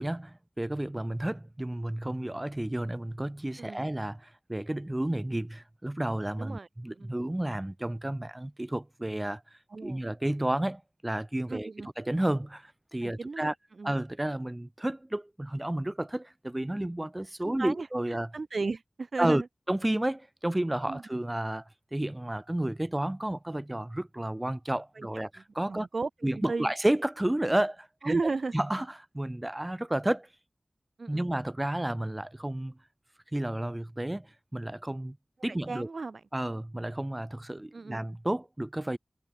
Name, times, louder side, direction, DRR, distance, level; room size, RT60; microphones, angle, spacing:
voice 1, 0.0-9.4 9.8-11.7 12.0-13.5 13.8-18.3 19.2-19.4 19.7-21.6 21.9-25.9 26.2-28.2 28.5-28.9 29.1-30.3 31.1-32.8 33.3-34.3 34.5-35.2 35.4-35.9 36.3-39.0, right 1 dB, 20° right, 1.2 m, -31 dB
voice 2, 6.4-7.1 9.7-10.1 11.5-11.9 13.0-13.5 13.8-13.9 17.4-17.9 18.3-19.5 20.9-21.0 25.0-25.1 25.7-26.7 28.0-28.6 31.0-31.2 35.5-36.2 37.7-38.0, right 3 dB, 70° right, 0.5 m, -35 dB
wide cardioid pair, 75°, 0 cm